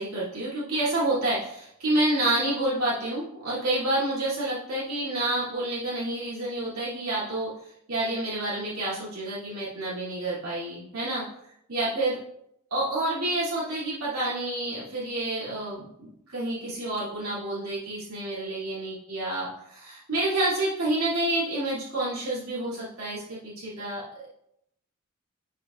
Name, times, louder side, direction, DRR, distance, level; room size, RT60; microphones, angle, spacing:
voice 1, 0.0-11.2 11.7-12.2 12.7-24.0, right 1 dB, 90° right, -9 dB, 2.8 m, -29 dB
11.0 x 5.7 x 2.5 m, 0.78 s
head